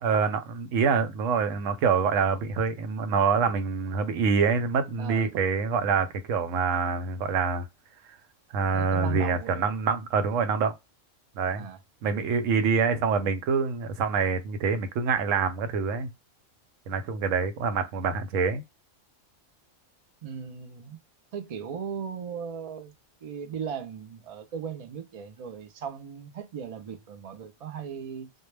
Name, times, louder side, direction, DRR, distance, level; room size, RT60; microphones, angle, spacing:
voice 1, 0.0-7.6 8.5-10.7 11.4-11.7 12.0-16.1 16.9-18.6, right 5 dB, 85° right, 1.0 m, -26 dB
voice 2, 5.0-5.3 8.7-9.7 11.5-11.8 20.2-21.0 21.3-22.9 23.2-28.3, right 7 dB, 70° right, 0.3 m, -37 dB
2.2 x 2.1 x 3.1 m
omnidirectional pair, 1.3 m